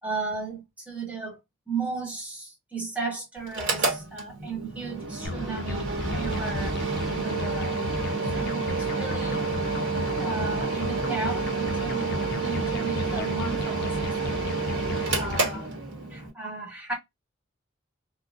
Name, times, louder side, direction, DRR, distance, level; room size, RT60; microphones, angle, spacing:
voice 1, 0.0-1.4 1.7-6.8 7.1-7.8 8.3-9.4 10.2-14.8 15.1-15.8 16.1-16.9, right 4 dB, 5° right, 1.2 m, -35 dB
Mechanical fan, 3.5-16.3, right 4 dB, 65° right, 1.1 m, -29 dB
sound 1, 5.2-15.6, left 3 dB, 50° left, 0.5 m, -36 dB
3.7 x 2.1 x 2.5 m
head